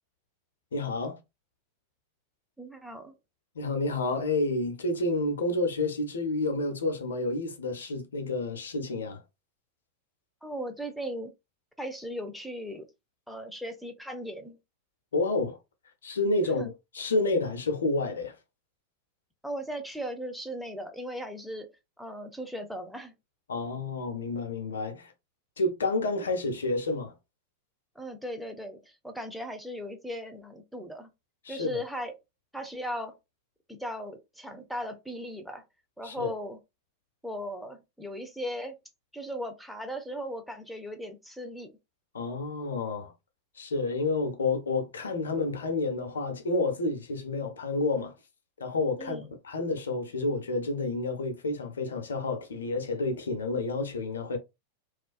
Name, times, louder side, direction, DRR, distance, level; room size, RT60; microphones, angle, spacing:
voice 1, 0.7-1.2 3.5-9.2 15.1-15.6 16.0-18.4 23.5-25.1 25.6-27.1 31.4-31.8 36.0-36.3 42.1-43.1 43.6-48.1 48.6-54.4, left 2 dB, 70° left, 0.6 m, -29 dB
voice 2, 2.6-3.1 10.4-11.3 11.8-12.8 13.3-14.6 16.6-16.7 19.4-21.7 22.0-23.1 28.0-31.1 31.5-32.1 32.5-33.1 33.7-35.6 36.0-36.6 37.2-38.8 39.1-41.7 49.0-49.3, equal, ahead, 0.5 m, -37 dB
2.4 x 2.2 x 2.4 m
figure-of-eight pair, 90°, 0 cm